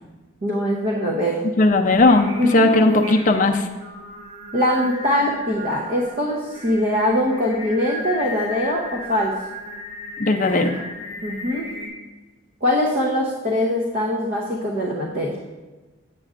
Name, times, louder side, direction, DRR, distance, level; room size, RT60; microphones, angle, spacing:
voice 1, 0.4-1.4 2.4-2.8 4.5-9.3 11.2-11.7 12.6-15.4, left 1 dB, 40° right, -2 dB, 0.7 m, -22 dB
voice 2, 1.6-3.6 10.2-10.7, left 2 dB, 35° left, 3 dB, 0.5 m, -17 dB
Singing, 1.9-11.9, left 1 dB, 85° right, 1.7 m, -35 dB
8.9 x 7.6 x 2.4 m, 1.2 s
head